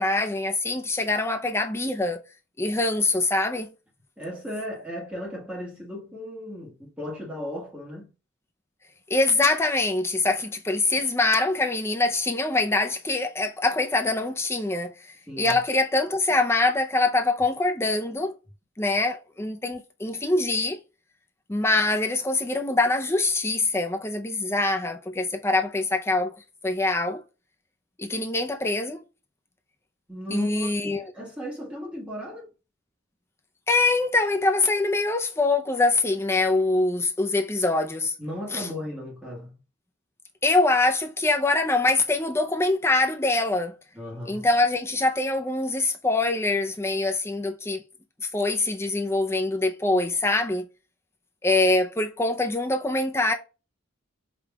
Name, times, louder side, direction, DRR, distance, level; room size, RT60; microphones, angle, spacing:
voice 1, 0.0-2.2 2.6-3.7 9.1-18.3 18.8-20.8 21.5-26.3 26.6-27.2 28.0-29.0 30.3-31.1 33.7-38.1 38.5-38.7 40.4-43.7 44.3-47.8 48.2-50.7 51.4-53.3, left 2 dB, 10° left, 0.5 m, -24 dB
voice 2, 4.2-8.1 15.3-15.6 30.1-32.5 38.2-39.6 43.9-44.5, equal, 5° right, 1.5 m, -36 dB
5.2 x 3.1 x 2.2 m
head